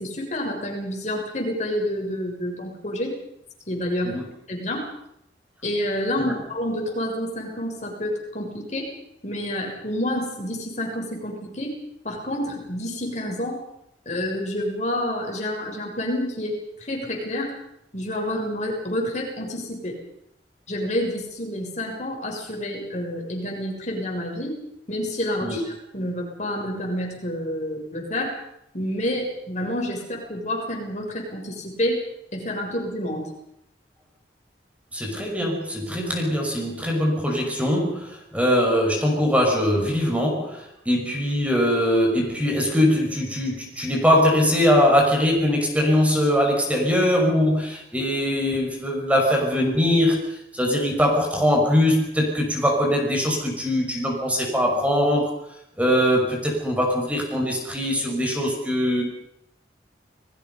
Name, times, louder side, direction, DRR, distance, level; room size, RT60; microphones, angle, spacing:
voice 1, 0.0-3.1 3.7-4.2 4.5-4.9 5.6-8.9 9.2-11.7 12.0-13.6 14.1-17.5 17.9-20.0 20.7-24.6 24.9-25.6 25.9-28.4 28.7-32.0 32.3-33.3, left 1 dB, 40° left, 1 dB, 7.0 m, -28 dB
voice 2, 34.9-55.4 55.8-59.0, equal, 10° right, 0 dB, 5.9 m, -22 dB
30.0 x 20.5 x 5.6 m, 0.77 s
head